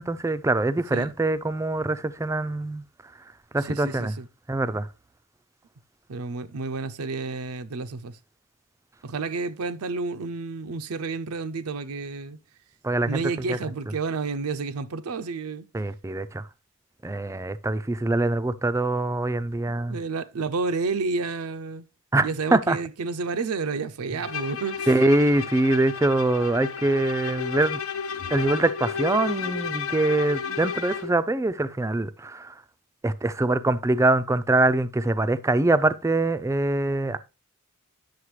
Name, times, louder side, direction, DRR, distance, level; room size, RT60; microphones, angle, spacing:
voice 1, 0.0-2.8 3.5-4.1 4.5-4.9 12.8-13.2 13.5-13.6 15.7-16.4 17.0-20.0 22.1-22.8 24.9-27.8 28.3-32.5 33.0-37.2, right 2 dB, 15° right, 0.4 m, -24 dB
voice 2, 3.6-4.3 6.1-8.2 9.0-12.4 13.1-15.7 19.7-21.9 22.2-24.9, right 4 dB, 80° right, 0.5 m, -30 dB
Bowed string instrument, 24.2-31.2, left 6 dB, 65° left, 0.7 m, -32 dB
9.6 x 6.6 x 3.1 m
head